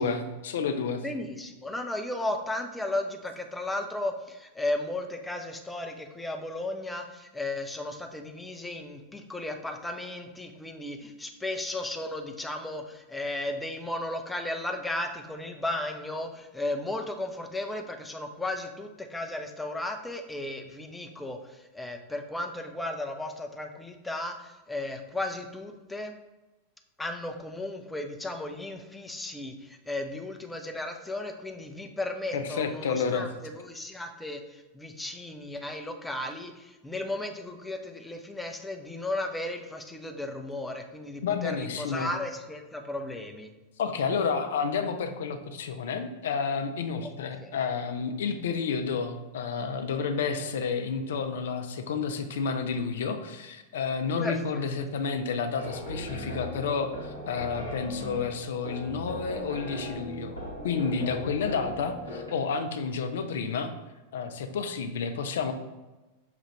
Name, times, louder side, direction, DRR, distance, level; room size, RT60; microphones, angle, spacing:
voice 1, 0.0-1.0 32.3-33.3 41.2-42.1 43.8-60.4 60.6-63.7 64.1-65.5, left 5 dB, 60° left, 8 dB, 0.4 m, -30 dB
voice 2, 1.0-26.1 27.0-43.5 47.4-47.6 54.2-54.7, left 1 dB, 5° left, 4 dB, 0.5 m, -35 dB
sound 1, 55.6-62.3, equal, 80° right, 1.3 m, -38 dB
5.7 x 2.4 x 3.2 m, 1.1 s
figure-of-eight pair, 90°, 0 cm